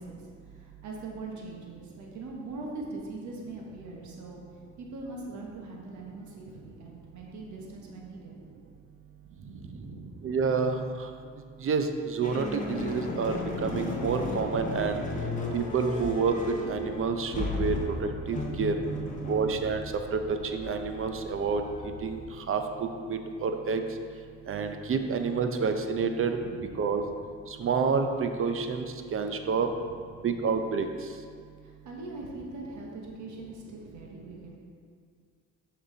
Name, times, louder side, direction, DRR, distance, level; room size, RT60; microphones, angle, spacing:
voice 1, 0.0-4.4 4.8-8.3 9.2-10.3 18.3-19.0 26.2-27.0 29.6-30.0 31.6-34.6, right 2 dB, 70° right, -1 dB, 1.2 m, -42 dB
voice 2, 10.2-10.9 11.6-15.0 15.5-16.4 16.7-18.7 19.3-19.8 20.1-21.6 22.0-23.8 24.5-26.4 26.8-27.0 27.6-28.9 29.1-29.7 30.2-30.9, right 5 dB, 45° right, 6 dB, 0.6 m, -28 dB
sound 1, 12.2-22.3, left 2 dB, 25° left, 1.1 m, -35 dB
6.5 x 5.6 x 3.9 m, 2.1 s
cardioid pair, 90°, 30 cm